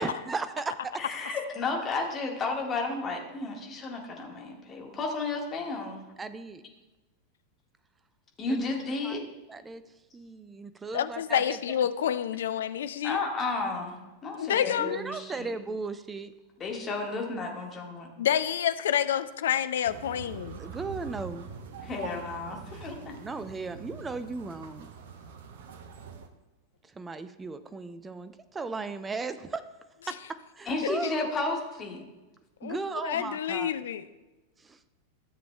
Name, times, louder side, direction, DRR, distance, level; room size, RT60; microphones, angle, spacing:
voice 1, 0.0-0.9 6.2-6.6 8.5-8.7 9.0-9.2 9.5-9.8 10.1-11.6 14.8-16.3 20.6-21.5 23.2-24.9 26.9-29.6 30.5-31.3 32.6-33.7 34.6-34.8, right 4 dB, 15° right, 11 dB, 0.5 m, -36 dB
voice 2, 1.0-6.0 8.4-9.3 13.0-14.0 14.2-15.5 16.6-18.1 21.8-23.2 30.6-32.0, left 3 dB, 25° left, 0 dB, 1.6 m, -32 dB
voice 3, 10.9-13.2 14.4-15.0 18.2-20.6 32.6-34.0, left 9 dB, 60° left, 13 dB, 0.4 m, -28 dB
sound 1, 19.8-26.3, right 6 dB, 55° right, 0.7 m, -44 dB
13.5 x 6.9 x 2.2 m, 1.2 s
figure-of-eight pair, 90°, 0 cm